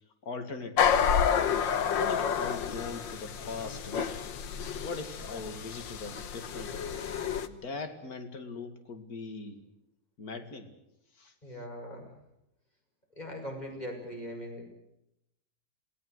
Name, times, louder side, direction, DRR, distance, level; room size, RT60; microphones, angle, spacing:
voice 1, 0.2-1.3 2.0-4.2 4.8-6.9 7.5-9.6 10.2-10.7 11.2-11.3, left 3 dB, 50° left, 7 dB, 2.7 m, -40 dB
sound 1, 0.8-7.5, left 7 dB, 80° left, 1.9 m, -30 dB
voice 2, 11.4-12.1 13.2-14.8, equal, 20° left, 2 dB, 6.5 m, -40 dB
28.0 x 18.5 x 8.0 m, 0.85 s
omnidirectional pair, 2.0 m